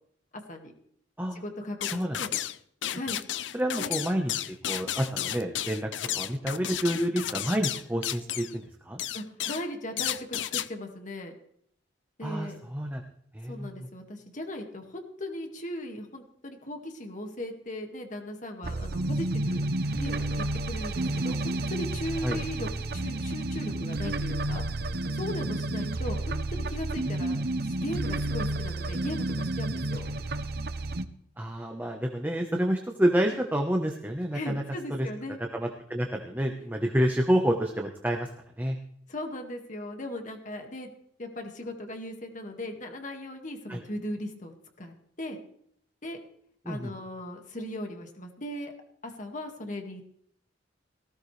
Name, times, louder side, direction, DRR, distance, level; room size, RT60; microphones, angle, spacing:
voice 1, 1.4-2.3 3.0-3.2 3.8-4.0 9.1-11.4 12.2-12.6 13.5-19.6 20.0-24.7 25.1-30.0 34.3-35.4 39.1-40.9 41.2-45.4 46.0-46.2 46.7-48.7 49.0-50.0, left 1 dB, 45° left, 3 dB, 2.1 m, -38 dB
sound 1, 1.8-2.6 2.8-8.5 9.0-9.7 10.0-10.7, left 11 dB, 80° left, 0.6 m, -32 dB
voice 2, 3.5-9.0 12.2-13.0 13.3-13.9 22.2-22.4 31.4-34.6 34.9-35.1 35.5-38.3 38.6-38.8 43.7-43.8 46.6-46.9, equal, 10° right, 2 dB, 1.2 m, -29 dB
sound 2, 18.6-31.0, right 2 dB, 55° right, 0.8 m, -31 dB
18.5 x 15.5 x 3.4 m, 0.67 s
head